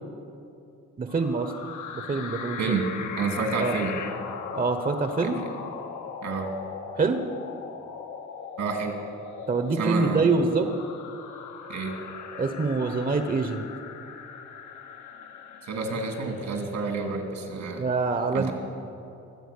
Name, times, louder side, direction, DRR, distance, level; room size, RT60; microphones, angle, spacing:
voice 1, 1.0-1.5 2.1-2.6 3.6-3.8 4.5-5.4 6.9-7.2 9.5-10.7 12.4-13.6 17.8-18.5, right 4 dB, 30° right, 7 dB, 1.0 m, -25 dB
sound 1, 1.1-16.8, left 6 dB, 75° left, 1.3 m, -39 dB
voice 2, 2.6-3.9 5.2-5.3 6.2-6.5 8.6-9.0 9.8-10.3 11.7-12.0 15.6-17.8 18.3-18.5, right 4 dB, 70° right, 4 dB, 2.6 m, -29 dB
23.0 x 7.9 x 6.7 m, 2.7 s
cardioid pair, 90°, 30 cm